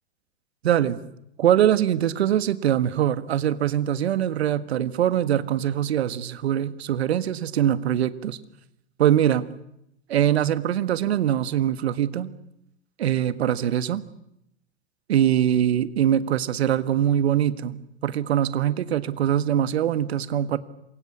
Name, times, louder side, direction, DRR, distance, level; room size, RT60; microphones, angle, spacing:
voice 1, 0.6-1.0 1.4-8.4 9.0-9.5 10.1-12.3 13.0-14.0 15.1-20.6, right 10 dB, 70° right, 14 dB, 1.7 m, -23 dB
27.5 x 23.5 x 8.6 m, 0.81 s
figure-of-eight pair, 90°, 33 cm